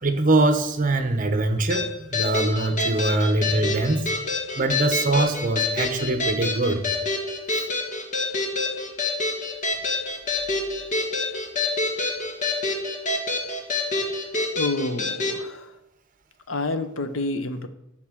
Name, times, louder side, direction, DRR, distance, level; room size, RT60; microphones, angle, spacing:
voice 1, 0.0-4.1 4.5-6.8 7.5-7.7, right 2 dB, 40° right, 9 dB, 1.0 m, -23 dB
sound 1, 1.7-15.4, left 3 dB, 40° left, 1.8 m, -27 dB
voice 2, 14.6-15.7 16.5-17.7, left 2 dB, 85° left, 11 dB, 0.9 m, -28 dB
8.7 x 6.5 x 6.3 m, 0.84 s
head